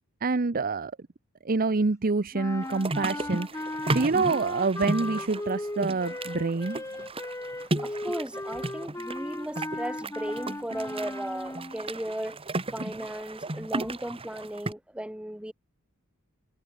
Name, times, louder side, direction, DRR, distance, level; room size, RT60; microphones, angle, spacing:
voice 1, 0.2-0.9 1.4-6.8, right 3 dB, 40° right, 0.7 m, -27 dB
sound 1, 2.3-11.9, left 1 dB, 15° left, 1.6 m, -37 dB
sound 2, 2.6-14.7, right 2 dB, 25° right, 1.7 m, -34 dB
voice 2, 7.8-12.4 12.7-15.5, right 1 dB, 5° right, 1.1 m, -36 dB
head